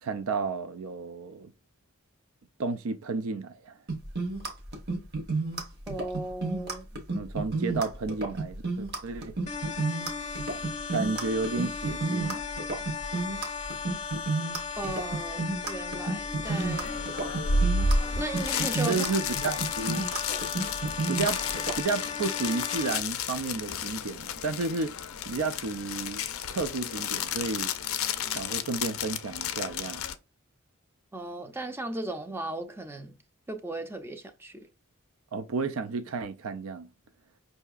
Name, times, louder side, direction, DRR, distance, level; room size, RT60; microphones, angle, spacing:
voice 1, 0.0-1.5 2.6-3.8 7.1-9.4 10.6-12.4 18.9-20.0 21.1-21.4 21.8-25.0 25.3-26.2 26.5-27.7 28.4-30.0 35.3-36.9, right 4 dB, 75° right, 0.4 m, -32 dB
sound 1, 3.9-21.8, right 3 dB, 45° right, 1.0 m, -31 dB
voice 2, 5.9-6.9 14.8-17.0 18.2-19.2 20.3-20.4 31.1-33.2 33.5-34.7, right 2 dB, 10° right, 0.5 m, -36 dB
sound 2, 9.5-23.0, left 5 dB, 30° left, 0.6 m, -36 dB
sound 3, 16.4-30.1, left 4 dB, 70° left, 0.4 m, -32 dB
5.5 x 2.7 x 2.4 m
head